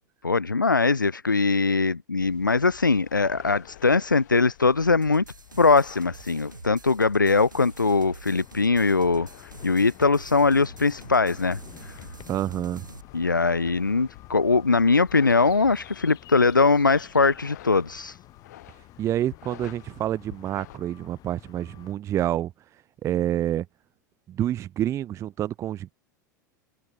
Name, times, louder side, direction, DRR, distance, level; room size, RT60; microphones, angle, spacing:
voice 1, 0.2-5.2 5.6-12.0 13.1-18.2, left 4 dB, 85° left, 0.6 m, -21 dB
sound 1, 2.2-20.8, left 15 dB, 60° left, 4.4 m, -49 dB
sound 2, 5.0-13.0, right 4 dB, 85° right, 4.1 m, -45 dB
sound 3, 8.3-21.9, left 14 dB, 40° left, 3.0 m, -50 dB
voice 2, 12.3-12.9 19.0-22.5 23.0-23.7 24.3-25.9, right 12 dB, 30° right, 0.5 m, -28 dB
open air
figure-of-eight pair, 85°, 10 cm